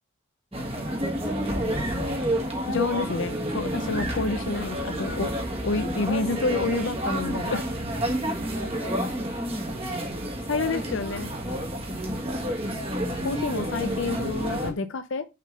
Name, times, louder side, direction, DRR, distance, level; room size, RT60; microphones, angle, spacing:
voice 1, 0.5-2.5 4.0-4.1 8.2-10.2 10.7-10.9 11.9-12.2, equal, 10° right, 1.3 m, -37 dB
sound 1, 0.5-14.7, equal, 25° right, 1.5 m, -29 dB
voice 2, 2.7-5.3 5.6-7.6 10.5-11.3 13.2-15.2, left 3 dB, 55° left, 0.6 m, -29 dB
6.4 x 3.7 x 5.2 m
head